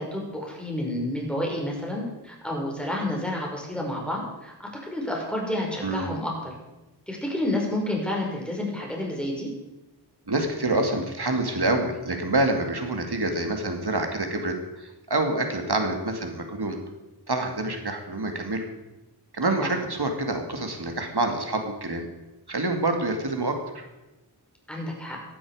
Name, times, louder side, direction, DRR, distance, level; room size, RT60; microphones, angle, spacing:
voice 1, 0.0-6.5 7.1-9.5 19.4-19.7 24.7-25.2, left 1 dB, 5° left, -2 dB, 5.5 m, -30 dB
voice 2, 10.3-16.8 17.3-18.6 19.3-22.1 22.5-23.8, right 2 dB, 70° right, 4 dB, 2.4 m, -27 dB
17.5 x 12.5 x 5.0 m, 1.0 s
wide cardioid pair, 50°, 41 cm